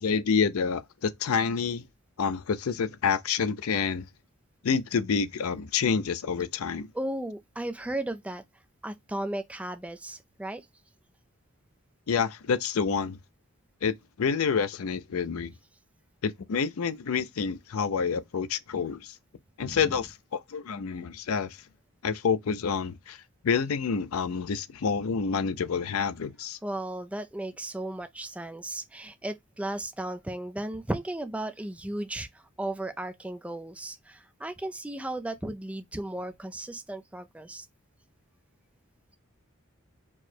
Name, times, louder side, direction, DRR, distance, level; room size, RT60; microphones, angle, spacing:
voice 1, 0.0-1.9 2.2-4.1 4.6-6.9 12.1-13.2 13.8-15.5 16.2-19.1 19.6-21.6 22.0-23.2 23.4-26.6, left 6 dB, 80° left, 0.5 m, -28 dB
voice 2, 6.9-8.4 8.8-10.6 19.6-19.8 26.6-32.3 32.6-37.7, right 1 dB, 5° right, 0.3 m, -35 dB
4.6 x 2.1 x 4.2 m
head